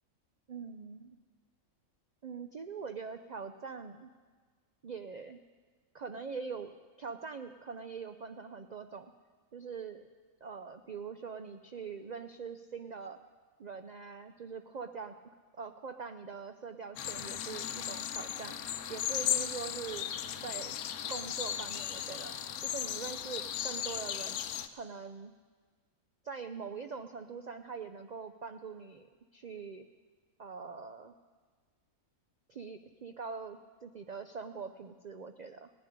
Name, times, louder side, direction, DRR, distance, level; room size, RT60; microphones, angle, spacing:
voice 1, 0.5-1.2 2.2-4.1 4.8-5.4 5.9-6.7 7.0-9.1 9.5-10.1 10.4-13.2 13.6-15.2 15.6-18.6 18.9-20.1 20.4-20.8 21.1-22.4 22.6-24.4 24.7-25.3 26.2-29.1 29.3-29.9 30.4-31.1 32.5-35.7, right 5 dB, 90° right, 8 dB, 0.3 m, -43 dB
sound 1, 17.0-24.7, left 10 dB, 85° left, 1.1 m, -36 dB
17.0 x 7.5 x 10.0 m, 1.5 s
omnidirectional pair, 1.5 m